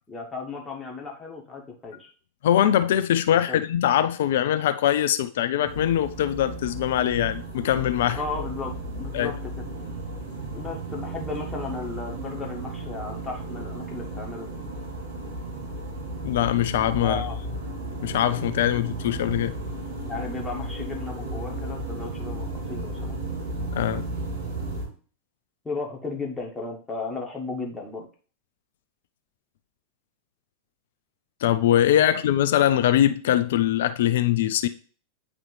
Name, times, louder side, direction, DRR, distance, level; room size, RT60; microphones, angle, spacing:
voice 1, 0.1-2.1 3.5-3.6 8.1-9.6 10.5-14.5 16.9-17.4 20.0-23.2 25.6-28.1 31.9-32.1, left 3 dB, 10° left, 1.5 m, -35 dB
voice 2, 2.4-8.2 9.1-9.3 16.2-17.2 18.0-19.5 23.7-24.1 31.4-34.7, left 11 dB, 55° left, 0.3 m, -22 dB
sound 1, 5.6-24.8, right 2 dB, 70° right, 3.0 m, -34 dB
9.0 x 3.6 x 3.3 m
figure-of-eight pair, 90°, 0 cm